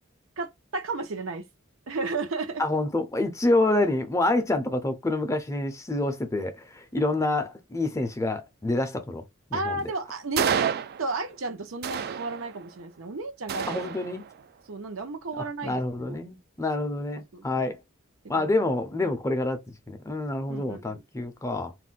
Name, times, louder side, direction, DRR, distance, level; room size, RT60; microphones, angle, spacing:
voice 1, 0.4-1.5 1.9-2.6 9.5-10.7 11.0-13.8 14.7-16.2 17.3-17.6 18.3-18.5 19.0-19.1 20.5-21.0, right 3 dB, 80° right, 0.7 m, -33 dB
voice 2, 2.6-9.2 9.5-9.8 13.7-14.3 15.4-17.8 18.3-19.6 19.9-21.7, left 2 dB, 15° left, 0.4 m, -27 dB
sound 1, 10.4-11.4 11.8-12.8 13.5-14.5, right 8 dB, 50° right, 0.3 m, -30 dB
2.4 x 2.1 x 3.8 m
head